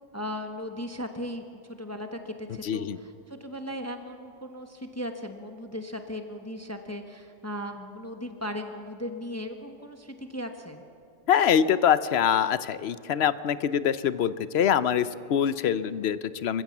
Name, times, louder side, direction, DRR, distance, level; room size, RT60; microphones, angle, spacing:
voice 1, 0.1-10.8, equal, 15° left, 5 dB, 1.1 m, -37 dB
voice 2, 2.6-3.0 11.3-16.6, left 8 dB, 60° left, 15 dB, 0.9 m, -24 dB
27.0 x 15.5 x 7.2 m, 2.5 s
omnidirectional pair, 1.4 m